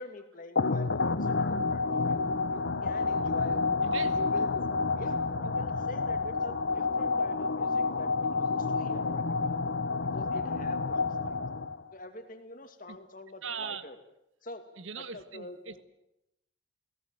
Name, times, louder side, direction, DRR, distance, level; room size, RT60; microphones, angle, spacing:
voice 1, 0.0-2.2 2.5-9.6 10.1-11.4 11.9-14.0 14.4-14.7 15.0-15.8, left 2 dB, 45° left, 6 dB, 2.5 m, -46 dB
sound 1, 0.6-11.9, left 4 dB, 65° left, 0.8 m, -29 dB
voice 2, 13.4-13.9 14.8-15.8, right 6 dB, 85° right, 12 dB, 1.5 m, -39 dB
29.0 x 17.0 x 7.8 m, 0.82 s
head